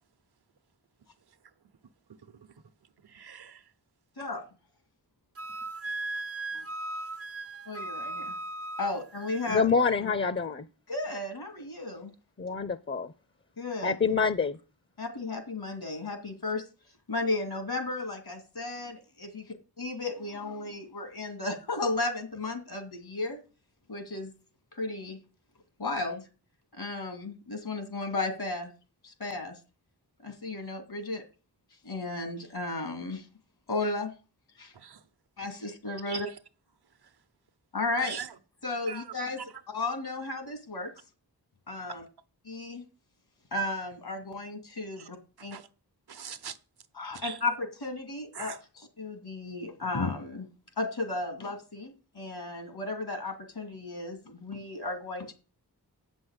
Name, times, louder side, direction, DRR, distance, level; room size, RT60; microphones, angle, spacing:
voice 1, 2.1-2.6 3.0-3.7 34.7-35.1 36.1-36.4 37.0-37.1 38.0-38.4 38.9-39.4 45.0-45.1 45.4-45.7 46.1-46.6 47.1-47.4 48.3-48.6, right 7 dB, 75° right, 0.9 m, -42 dB
Wind instrument woodwind instrument, 5.4-9.6, right 2 dB, 40° right, 0.5 m, -37 dB
voice 2, 7.7-8.3 8.8-9.7 10.0-10.1 10.9-12.1 13.6-14.2 15.0-16.6 17.1-19.4 19.8-23.4 23.9-24.3 24.7-25.2 25.8-26.2 26.7-28.7 29.0-29.6 30.2-31.2 31.8-33.2 33.7-34.1 34.6-34.7 35.4-36.3 37.7-38.2 38.6-39.4 39.7-40.9 41.7-42.0 42.5-42.8 43.5-45.6 47.0-48.5 49.0-50.5 50.8-55.3, left 2 dB, 75° left, 2.5 m, -34 dB
voice 3, 9.5-10.7 12.4-13.1 13.8-14.6, left 5 dB, 30° left, 0.6 m, -26 dB
8.1 x 6.2 x 8.1 m
wide cardioid pair, 55°, 39 cm